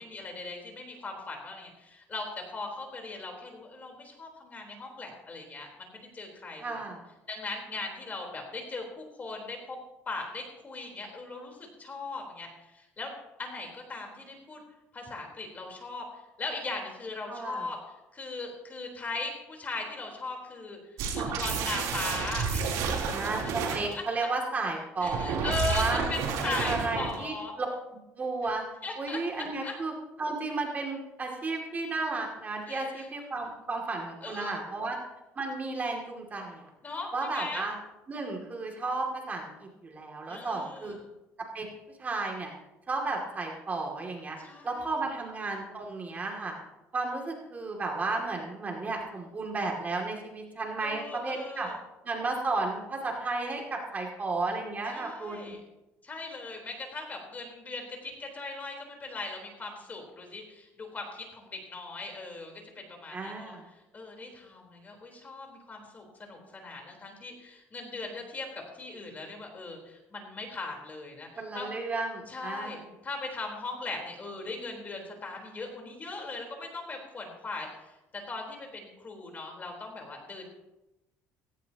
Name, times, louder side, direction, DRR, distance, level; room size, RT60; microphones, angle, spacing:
voice 1, 0.0-6.8 7.3-9.8 10.1-13.1 13.4-14.6 14.9-23.2 23.9-24.0 25.0-27.5 28.8-29.7 32.7-33.1 34.2-34.5 36.8-37.7 40.3-40.9 44.4-44.9 50.8-51.8 54.9-55.6 56.0-68.5 68.7-71.7 72.3-78.0 78.3-80.5, left 3 dB, 30° left, 1 dB, 4.0 m, -39 dB
voice 2, 6.6-7.0 17.3-17.7 23.1-23.4 23.7-26.0 26.4-27.7 28.2-28.6 29.0-29.9 30.2-35.0 35.4-36.7 37.1-37.7 38.1-41.0 41.4-41.7 42.0-42.5 42.9-44.4 44.6-46.5 46.9-51.7 52.0-55.6 63.1-63.7 71.4-72.8, right 3 dB, 30° right, 1 dB, 2.5 m, -33 dB
sound 1, 21.0-23.9 25.0-27.2, right 5 dB, 80° right, 3.5 m, -31 dB
17.0 x 16.5 x 3.0 m, 0.99 s
cardioid pair, 115°, 6 cm